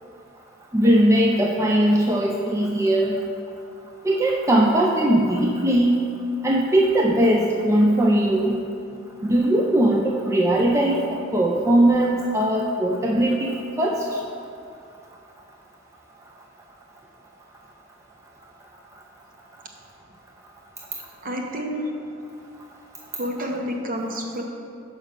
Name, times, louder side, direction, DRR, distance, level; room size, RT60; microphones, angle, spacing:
voice 1, 0.7-3.1 4.0-6.0 6.4-8.6 9.2-11.0 11.3-14.2, right 1 dB, 15° right, -2 dB, 0.4 m, -19 dB
voice 2, 21.2-21.8 23.2-24.4, equal, 45° right, 1 dB, 0.9 m, -29 dB
6.6 x 5.0 x 5.3 m, 2.4 s
head